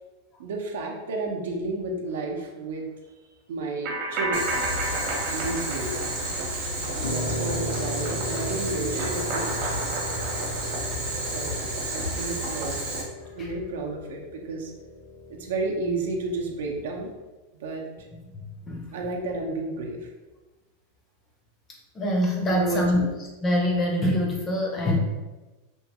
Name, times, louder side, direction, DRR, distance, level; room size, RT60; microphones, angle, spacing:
voice 1, 0.4-2.8 3.5-4.4 5.3-5.9 6.9-9.7 11.3-11.5 11.9-12.8 13.3-14.7 15.4-17.1 17.6-17.8 18.9-20.1 22.5-23.1, right 3 dB, 90° right, 1 dB, 0.6 m, -31 dB
sound 1, 3.8-7.3 7.6-11.5, right 2 dB, 35° right, 0.7 m, -33 dB
Boiling, 4.3-13.0, right 1 dB, 60° right, 0.9 m, -31 dB
Piano, 7.0-17.1, left 1 dB, 85° left, 0.4 m, -37 dB
voice 2, 22.0-23.0 23.4-25.0, left 1 dB, 15° left, 0 dB, 0.4 m, -24 dB
3.0 x 2.3 x 2.9 m, 1.2 s
supercardioid pair, 175°, 0 cm